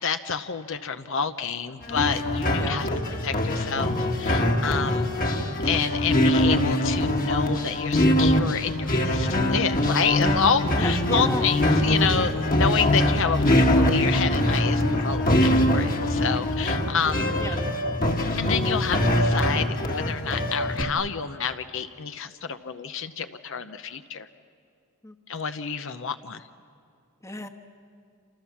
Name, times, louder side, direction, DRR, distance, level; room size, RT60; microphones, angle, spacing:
voice 1, 0.0-2.9 3.2-5.4 5.6-17.6 18.4-24.3 25.3-26.4, left 6 dB, 60° left, 9 dB, 0.8 m, -29 dB
sound 1, 1.8-20.8, left 1 dB, 40° left, 1.8 m, -23 dB
voice 2, 10.8-11.4 17.4-17.6 25.0-25.1 27.2-27.5, left 2 dB, 15° left, 6 dB, 1.2 m, -33 dB
28.0 x 27.5 x 7.3 m, 2.5 s
head